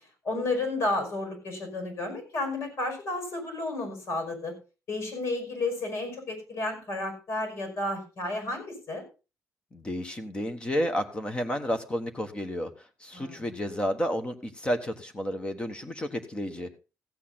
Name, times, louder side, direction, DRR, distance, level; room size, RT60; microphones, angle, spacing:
voice 1, 0.2-4.5 4.9-9.0 13.1-13.6, left 2 dB, 65° left, 5 dB, 5.8 m, -32 dB
voice 2, 9.7-12.7 13.0-16.8, equal, 20° left, 8 dB, 1.3 m, -31 dB
15.5 x 8.4 x 4.1 m, 0.31 s
cardioid pair, 155°, 5 cm